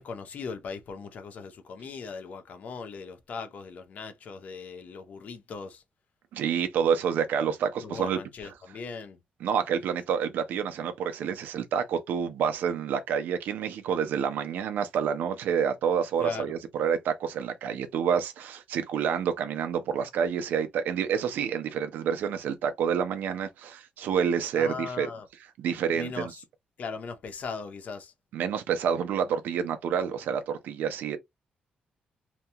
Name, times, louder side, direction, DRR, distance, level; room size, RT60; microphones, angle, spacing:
voice 1, 0.0-5.8 7.8-9.2 16.2-16.4 24.6-25.3 25.9-26.3 26.8-28.1, left 5 dB, 55° left, 0.6 m, -39 dB
voice 2, 6.3-8.2 9.4-25.1 25.6-26.3 28.3-31.2, right 7 dB, 85° right, 0.5 m, -28 dB
2.8 x 2.2 x 2.7 m
cardioid pair, 110°, 3 cm